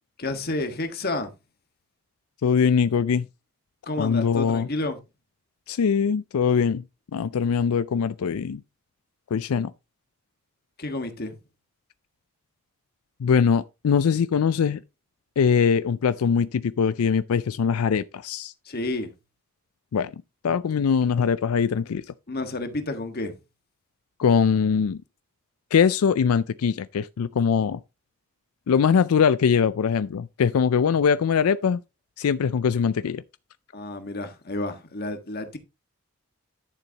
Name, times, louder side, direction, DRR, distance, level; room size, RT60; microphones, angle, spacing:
voice 1, 0.2-1.3 3.9-5.0 10.8-11.3 18.6-19.1 22.3-23.3 33.7-35.6, left 2 dB, 45° left, 1.5 m, -30 dB
voice 2, 2.4-3.3 4.0-4.7 5.7-6.8 7.1-8.6 9.3-9.7 13.2-14.8 15.4-18.5 19.9-20.1 20.4-22.0 24.2-25.0 25.7-27.8 28.7-31.8 32.2-33.2, left 6 dB, 90° left, 0.4 m, -22 dB
11.5 x 6.9 x 2.8 m
head